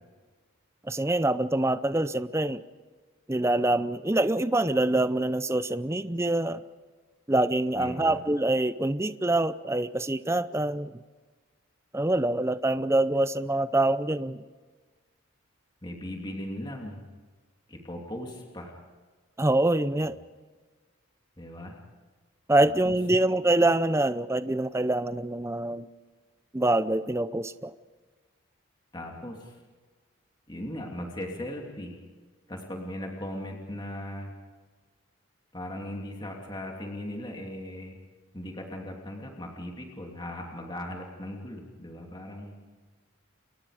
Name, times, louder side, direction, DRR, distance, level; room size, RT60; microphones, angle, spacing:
voice 1, 0.8-2.6 3.3-6.6 7.3-10.9 11.9-14.4 19.4-20.2 22.5-25.9 26.5-27.7, right 1 dB, 10° right, 13 dB, 0.6 m, -25 dB
voice 2, 7.7-8.2 15.8-17.0 17.7-18.8 20.0-20.1 21.4-21.8 22.6-23.0 28.9-29.6 30.5-32.0 32.5-34.3 35.5-38.0 38.3-42.6, left 1 dB, 20° left, 1 dB, 2.8 m, -38 dB
29.5 x 23.5 x 5.0 m, 1.4 s
head